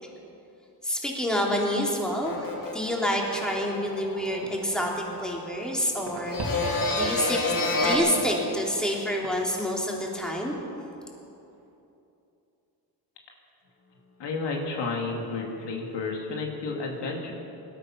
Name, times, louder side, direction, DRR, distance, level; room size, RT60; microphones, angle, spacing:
voice 1, 0.8-2.5 2.7-7.5 7.8-10.5, equal, ahead, -2 dB, 3.0 m, -28 dB
sound 1, 2.2-5.8 6.1-8.0, left 2 dB, 50° left, 2.7 m, -30 dB
sound 2, 4.1-11.3, right 2 dB, 70° right, 2.7 m, -43 dB
voice 2, 14.2-17.3, left 3 dB, 80° left, 1 dB, 2.3 m, -31 dB
18.0 x 12.5 x 5.9 m, 2.8 s
cardioid pair, 85°, 41 cm